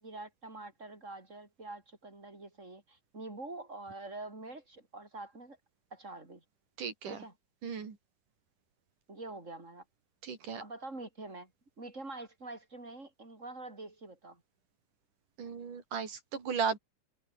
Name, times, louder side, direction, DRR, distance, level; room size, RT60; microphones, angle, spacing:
voice 1, 0.0-5.6 5.9-6.4 7.1-7.3 9.1-9.8 10.6-11.5 11.8-14.4, right 2 dB, 20° right, 5.8 m, -45 dB
voice 2, 6.8-7.2 7.6-8.0 10.2-10.6 15.4-16.8, right 6 dB, 90° right, 5.3 m, -35 dB
omnidirectional pair, 3.5 m